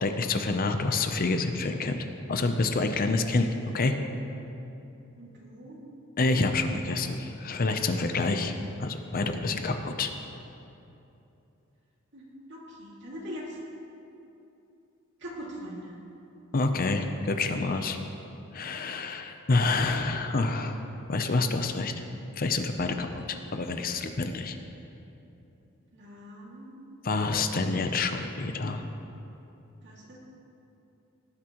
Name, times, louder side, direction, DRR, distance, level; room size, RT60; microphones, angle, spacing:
voice 1, 0.0-3.5 3.7-4.0 6.2-10.1 16.5-18.0 18.5-20.8 21.1-21.9 22.4-24.5 27.0-28.8, left 3 dB, 45° left, 7 dB, 0.6 m, -28 dB
voice 2, 5.1-5.8 12.1-13.6 15.2-16.0 25.9-26.8 29.8-30.2, equal, 60° right, -3 dB, 2.3 m, -42 dB
18.5 x 9.9 x 3.0 m, 2.8 s
head